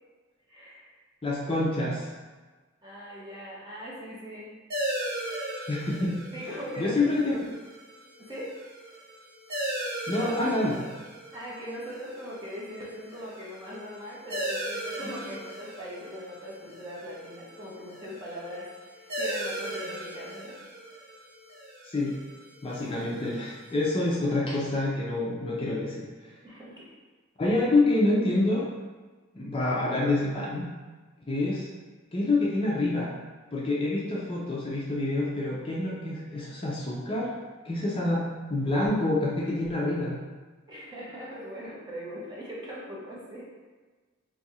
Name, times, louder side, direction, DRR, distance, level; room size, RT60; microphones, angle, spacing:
voice 1, 0.5-1.0 2.8-4.5 6.3-7.4 8.2-8.6 11.3-20.6 26.4-26.9 40.7-43.5, equal, 20° right, -6 dB, 0.8 m, -40 dB
voice 2, 1.2-2.1 5.7-6.2 6.8-7.5 10.1-10.8 21.8-22.2 22.6-26.3 27.4-28.7 29.3-30.7 31.3-31.7 32.1-33.1 33.5-37.3 37.6-40.2, left 2 dB, 25° left, -5 dB, 0.4 m, -27 dB
sound 1, 4.7-23.8, right 1 dB, 50° right, 0.7 m, -38 dB
2.7 x 2.4 x 4.0 m, 1.3 s
head